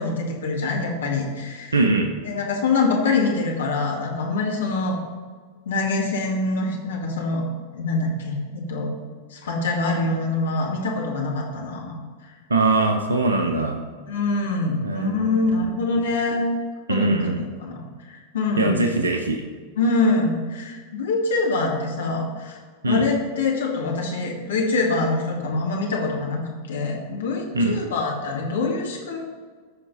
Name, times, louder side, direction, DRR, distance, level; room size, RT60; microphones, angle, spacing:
voice 1, 0.0-1.8 2.2-4.9 5.7-7.4 7.7-8.9 9.3-12.0 13.4-13.7 14.1-16.4 16.9-18.8 19.8-22.6 22.9-26.4 26.7-29.2, left 3 dB, 65° left, -1 dB, 1.9 m, -24 dB
voice 2, 1.7-2.1 12.5-13.8 14.8-15.5 16.9-17.4 18.6-19.4 22.8-23.0 27.5-27.8, right 2 dB, 75° right, 5 dB, 0.8 m, -21 dB
14.5 x 5.2 x 4.0 m, 1.5 s
figure-of-eight pair, 90°, 0 cm